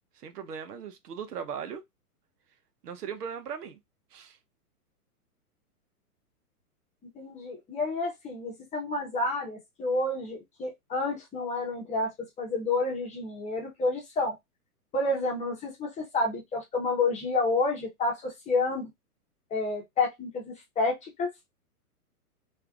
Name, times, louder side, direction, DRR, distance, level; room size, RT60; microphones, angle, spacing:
voice 1, 0.2-1.8 2.8-3.8 4.1-4.4, right 7 dB, 80° right, 0.8 m, -38 dB
voice 2, 7.1-14.3 14.9-18.9 19.5-21.3, left 3 dB, 15° left, 0.8 m, -29 dB
3.2 x 2.4 x 2.3 m
hypercardioid pair, 120°, 46 cm